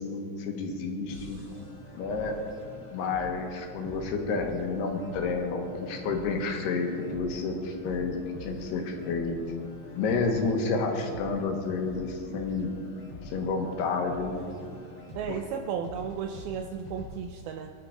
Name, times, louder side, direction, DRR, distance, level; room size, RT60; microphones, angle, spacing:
voice 1, 0.0-1.4 2.0-2.4 2.9-9.4 10.0-12.7 13.2-14.5, left 4 dB, 80° left, 3 dB, 3.6 m, -30 dB
sound 1, 1.1-17.1, equal, 20° left, 3.1 m, -45 dB
voice 2, 15.1-17.7, right 7 dB, 80° right, 5 dB, 2.4 m, -34 dB
23.0 x 11.0 x 4.9 m, 2.2 s
omnidirectional pair, 4.7 m